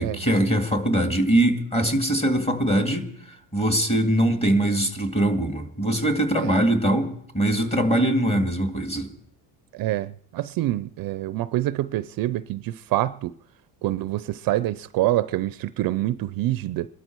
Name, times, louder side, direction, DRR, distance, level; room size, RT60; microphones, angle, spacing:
voice 1, 0.0-9.1, right 1 dB, 15° left, 2.0 m, -22 dB
voice 2, 9.7-13.3 13.8-16.9, right 15 dB, 50° right, 0.5 m, -26 dB
22.0 x 12.5 x 4.6 m
cardioid pair, 135°, 44 cm